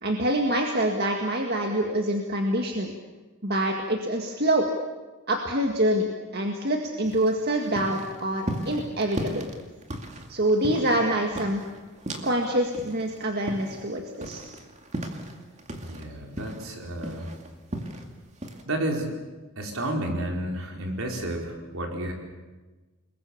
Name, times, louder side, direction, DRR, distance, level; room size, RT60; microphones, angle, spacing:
voice 1, 0.0-2.9 3.4-4.7 5.3-6.1 6.3-9.5 10.3-11.6 12.2-14.4, right 1 dB, 45° right, 3 dB, 1.9 m, -25 dB
sound 1, 7.0-12.5 12.7-16.1 16.4-18.1 18.4-18.6, right 1 dB, 30° right, 2.4 m, -36 dB
voice 2, 15.8-17.3 18.7-19.1 19.6-22.1, right 1 dB, 65° right, 1 dB, 4.7 m, -31 dB
29.5 x 21.0 x 7.2 m, 1.2 s
head